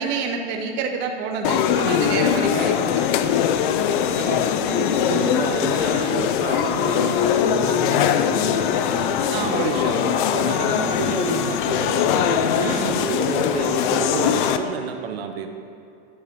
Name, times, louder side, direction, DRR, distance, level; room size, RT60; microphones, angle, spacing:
voice 1, 0.0-3.1 5.1-5.4 9.3-9.8 12.6-13.0, right 5 dB, 35° right, 3 dB, 0.7 m, -28 dB
sound 1, 1.4-14.6, left 9 dB, 50° left, 0.5 m, -21 dB
voice 2, 4.1-15.5, right 6 dB, 65° right, 6 dB, 0.8 m, -30 dB
10.0 x 4.8 x 5.1 m, 2.5 s
hypercardioid pair, 135°, 33 cm